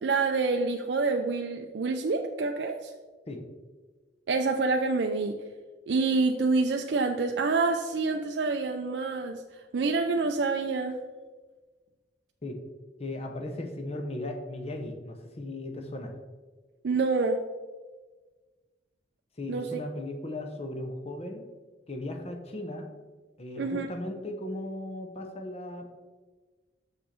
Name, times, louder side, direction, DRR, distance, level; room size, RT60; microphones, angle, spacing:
voice 1, 0.0-2.9 4.3-5.4 5.9-11.0 16.8-17.4 19.5-19.7 23.6-23.9, right 3 dB, 65° right, 4 dB, 0.4 m, -27 dB
voice 2, 13.0-16.2 19.4-21.4 21.9-22.9 23.4-25.9, left 1 dB, 35° left, 4 dB, 0.8 m, -37 dB
6.7 x 5.3 x 4.3 m, 1.3 s
head